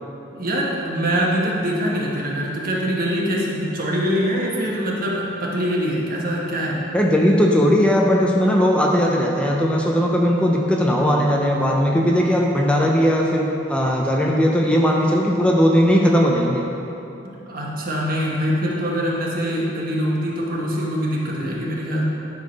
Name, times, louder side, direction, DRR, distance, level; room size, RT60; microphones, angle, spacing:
voice 1, 0.3-6.8 17.2-22.0, equal, 55° right, -3 dB, 1.3 m, -24 dB
voice 2, 6.9-16.7, equal, 5° left, -1 dB, 0.5 m, -18 dB
10.5 x 3.9 x 5.2 m, 2.8 s
head